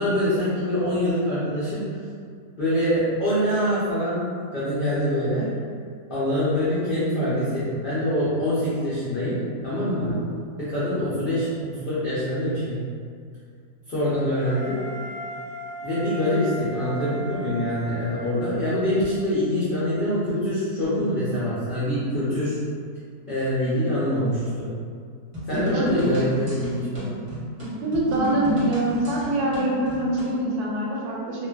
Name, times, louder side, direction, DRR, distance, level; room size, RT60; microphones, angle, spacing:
voice 1, 0.0-1.8 2.6-4.2 4.5-5.5 6.1-10.1 10.6-12.8 13.9-14.8 15.8-22.6 23.3-24.7 25.5-27.1, equal, 75° left, -12 dB, 0.4 m, -24 dB
voice 2, 10.0-10.4 22.3-22.4 25.5-26.1 27.8-31.5, right 1 dB, 80° right, -4 dB, 1.1 m, -25 dB
Wind instrument woodwind instrument, 14.3-19.1, equal, 60° left, 0.8 m, -37 dB
sound 1, 25.3-30.4, equal, 35° right, 0.5 m, -32 dB
2.4 x 2.3 x 2.2 m, 2.2 s
omnidirectional pair, 1.7 m